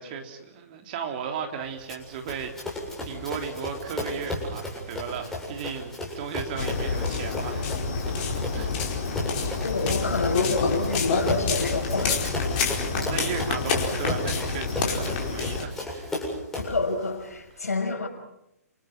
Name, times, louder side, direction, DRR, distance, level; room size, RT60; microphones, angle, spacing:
voice 1, 0.0-2.5 3.0-7.7 8.1-8.2 8.5-8.7 12.5-16.1, right 7 dB, 35° right, 3.6 m, -35 dB
Run, 1.9-16.8, left 1 dB, 5° left, 7.6 m, -34 dB
sound 1, 6.6-15.6, left 5 dB, 35° left, 4.7 m, -28 dB
voice 2, 9.6-12.2 16.6-18.1, left 3 dB, 65° left, 6.3 m, -28 dB
30.0 x 27.0 x 6.1 m
figure-of-eight pair, 125°, 9 cm